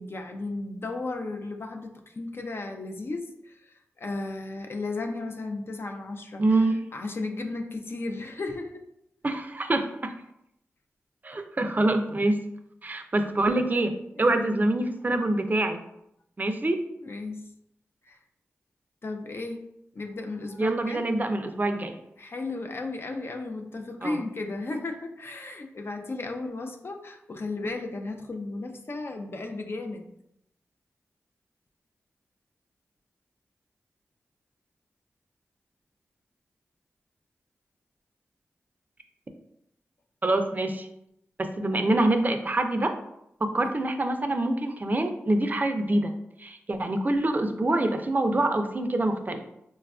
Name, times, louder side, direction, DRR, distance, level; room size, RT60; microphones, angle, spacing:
voice 1, 0.0-8.8 14.2-14.5 17.0-17.5 18.1-18.2 19.0-19.6 19.9-21.0 22.2-30.1 43.6-43.7, left 3 dB, 50° left, 4 dB, 0.4 m, -35 dB
voice 2, 6.4-6.8 9.2-10.1 11.2-12.4 12.8-15.8 16.4-16.8 20.6-21.9 24.0-24.2 40.2-40.9 41.4-42.9 43.4-46.1 46.4-49.4, right 2 dB, 35° right, 6 dB, 0.4 m, -25 dB
4.0 x 2.3 x 2.3 m, 0.79 s
cardioid pair, 45°, 5 cm